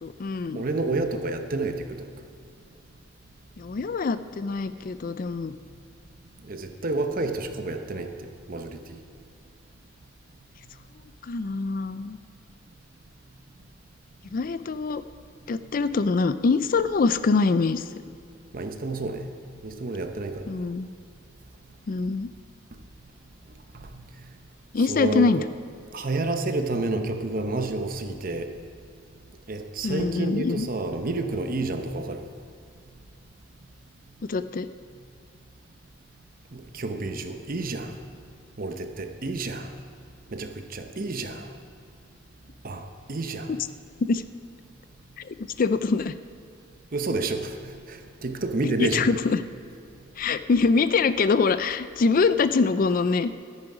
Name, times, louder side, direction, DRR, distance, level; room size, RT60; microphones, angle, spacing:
voice 1, 0.0-0.6 3.6-5.6 11.2-12.2 14.3-15.0 15.5-17.8 20.5-20.9 21.9-22.3 24.7-25.4 29.8-30.7 34.3-34.7 44.0-44.2 45.2-46.2 48.6-49.4 50.2-53.3, left 4 dB, 45° left, 13 dB, 0.4 m, -24 dB
voice 2, 0.5-2.1 6.4-8.1 8.5-9.0 18.5-19.3 19.6-20.5 24.8-25.5 25.9-28.5 29.5-32.3 36.5-37.9 38.6-39.7 40.3-41.4 42.6-43.5 46.9-47.5 47.9-49.1, right 2 dB, 50° right, 7 dB, 0.8 m, -29 dB
13.0 x 9.8 x 4.9 m, 2.5 s
head